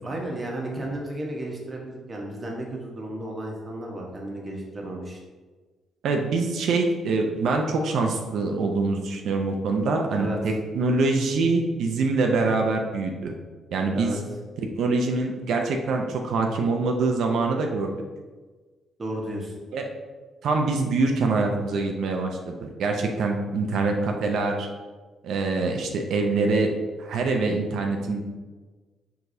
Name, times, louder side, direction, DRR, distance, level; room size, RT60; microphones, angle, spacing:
voice 1, 0.0-5.2 10.1-10.4 13.9-14.2 19.0-19.5, right 1 dB, 30° right, -1 dB, 1.1 m, -33 dB
voice 2, 6.0-13.3 13.7-14.1 14.7-17.9 19.7-19.8 20.4-24.7 25.2-26.7 27.0-28.2, right 3 dB, 75° right, 2 dB, 0.5 m, -24 dB
4.7 x 3.9 x 2.7 m, 1.3 s
cardioid pair, 90°, 0 cm